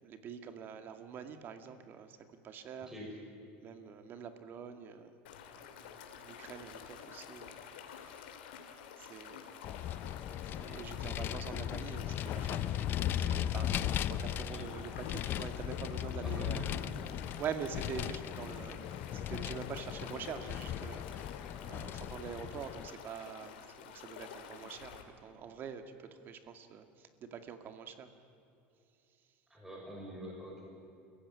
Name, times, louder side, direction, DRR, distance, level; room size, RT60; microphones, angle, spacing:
voice 1, 0.0-2.9 3.6-5.2 5.5-7.5 7.8-8.3 9.0-9.6 10.5-16.6 17.2-28.1, right 7 dB, 40° right, 8 dB, 2.2 m, -45 dB
sound 1, 5.3-25.0, left 8 dB, 90° left, 2.8 m, -50 dB
Vehicle, 9.6-22.9, left 11 dB, 45° left, 0.7 m, -37 dB
voice 2, 16.2-16.7 29.5-30.6, equal, 10° right, -2 dB, 6.4 m, -45 dB
29.0 x 16.0 x 9.9 m, 2.6 s
supercardioid pair, 125°, 5 cm